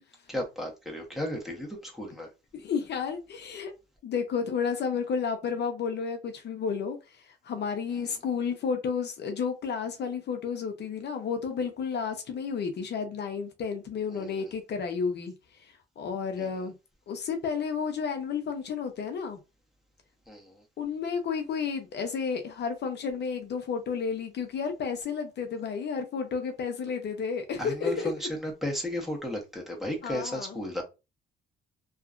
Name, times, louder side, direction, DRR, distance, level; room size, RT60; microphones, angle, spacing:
voice 1, 0.3-2.3 14.1-14.5 16.4-16.5 20.3-20.6 27.6-30.8, left 1 dB, ahead, 1.1 m, -34 dB
voice 2, 2.5-3.7 4.0-16.7 17.1-19.4 20.8-28.1 30.0-30.6, left 6 dB, 60° left, 0.6 m, -32 dB
2.8 x 2.4 x 2.4 m
cardioid pair, 90°, 20 cm